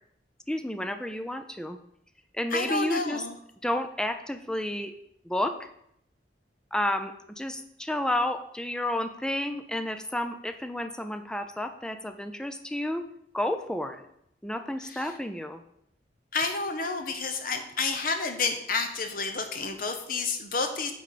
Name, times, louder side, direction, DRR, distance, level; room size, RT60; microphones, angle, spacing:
voice 1, 0.5-1.8 2.3-3.2 3.6-4.9 5.3-5.6 6.7-13.0 13.3-14.0 14.4-15.6, left 1 dB, 5° left, 8 dB, 0.5 m, -31 dB
voice 2, 2.5-3.4 14.8-15.2 16.3-20.9, left 4 dB, 50° left, 6 dB, 1.1 m, -30 dB
9.0 x 3.8 x 6.7 m, 0.73 s
head